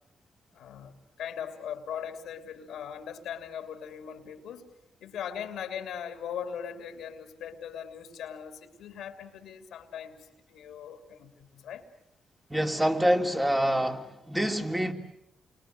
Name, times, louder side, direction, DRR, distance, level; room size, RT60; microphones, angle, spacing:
voice 1, 0.5-4.7 5.0-11.9, left 8 dB, 90° left, 6 dB, 3.0 m, -40 dB
voice 2, 12.5-14.9, equal, 10° right, 4 dB, 3.1 m, -26 dB
29.5 x 24.5 x 7.9 m, 0.83 s
cardioid pair, 75°, 0 cm